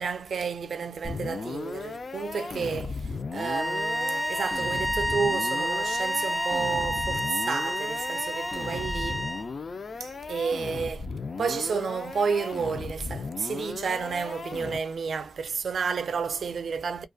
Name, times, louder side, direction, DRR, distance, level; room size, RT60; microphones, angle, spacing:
voice 1, 0.0-9.3 10.0-11.1 11.4-17.1, right 5 dB, 80° right, 0.3 m, -31 dB
sound 1, 1.0-15.1, left 4 dB, 65° left, 0.4 m, -36 dB
sound 2, 3.3-9.5, equal, 10° right, 0.5 m, -30 dB
2.3 x 2.3 x 2.4 m
wide cardioid pair, 85°, 0 cm